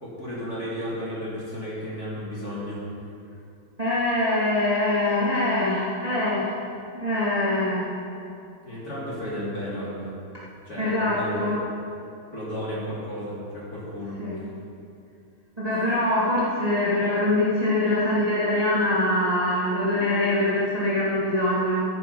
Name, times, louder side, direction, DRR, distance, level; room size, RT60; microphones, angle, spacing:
voice 1, 0.0-2.8 8.6-10.1 10.6-11.5 12.3-14.5, equal, 25° left, -8 dB, 2.7 m, -33 dB
voice 2, 3.8-6.6 6.9-7.9 10.8-11.6 14.2-14.4 15.6-21.8, left 1 dB, 75° right, -9 dB, 0.3 m, -23 dB
14.5 x 9.0 x 5.6 m, 2.6 s
omnidirectional pair, 5.5 m